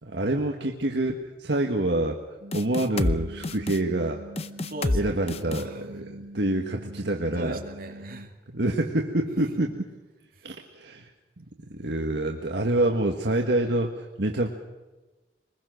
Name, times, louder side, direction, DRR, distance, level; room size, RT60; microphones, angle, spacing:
voice 1, 0.0-2.2 2.5-4.2 4.9-7.6 8.5-9.7 10.4-11.1 11.4-14.5, right 1 dB, 70° right, 2 dB, 1.5 m, -27 dB
sound 1, 2.4-8.3, right 1 dB, 85° right, 4.9 m, -44 dB
sound 2, 2.5-3.2 3.4-3.8 4.4-5.0 5.3-5.6, left 2 dB, 35° left, 0.7 m, -27 dB
voice 2, 4.6-5.9 7.3-8.4 9.3-9.6 10.3-10.5, right 1 dB, 50° right, 3 dB, 2.5 m, -39 dB
23.5 x 21.0 x 6.4 m, 1.1 s
head